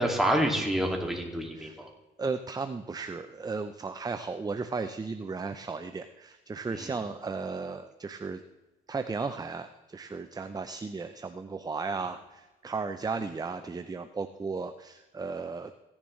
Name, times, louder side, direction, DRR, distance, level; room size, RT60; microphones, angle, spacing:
voice 1, 0.0-1.9 6.7-7.0, right 1 dB, ahead, 0 dB, 2.2 m, -28 dB
voice 2, 2.2-8.4 8.9-15.8, right 4 dB, 20° right, 9 dB, 0.5 m, -35 dB
16.0 x 10.5 x 3.2 m, 1.1 s
cardioid pair, 90°, 20 cm